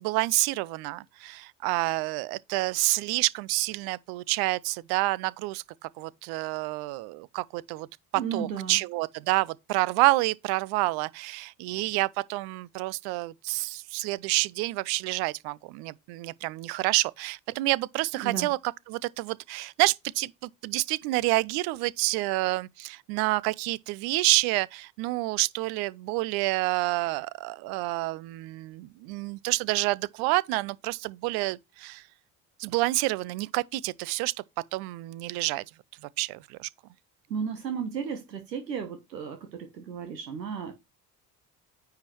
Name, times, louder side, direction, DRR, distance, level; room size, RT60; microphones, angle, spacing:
voice 1, 0.0-7.9 8.3-32.0 32.6-34.3 34.7-35.6 36.2-36.7, right 21 dB, 50° right, 0.6 m, -28 dB
voice 2, 8.1-8.8 18.2-18.5 37.3-40.7, right 7 dB, 80° right, 1.2 m, -34 dB
9.5 x 5.7 x 3.1 m
figure-of-eight pair, 55°, 49 cm